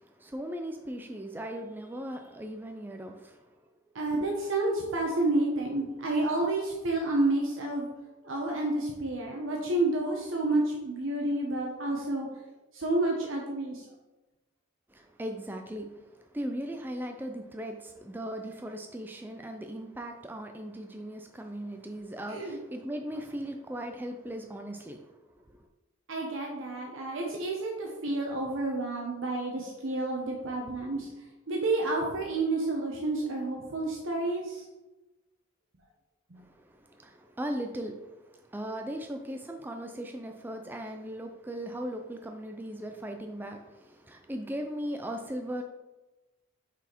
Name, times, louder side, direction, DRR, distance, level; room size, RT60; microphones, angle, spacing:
voice 1, 0.2-3.4 4.2-4.3 14.9-15.9 16.3-25.0 36.9-37.9 38.5-45.6, equal, 10° right, 4 dB, 0.3 m, -38 dB
voice 2, 3.9-7.9 8.2-12.3 12.7-13.8 22.3-22.6 26.1-31.1 31.5-34.6, right 2 dB, 70° right, -1 dB, 0.9 m, -30 dB
5.7 x 4.1 x 4.4 m, 1.1 s
head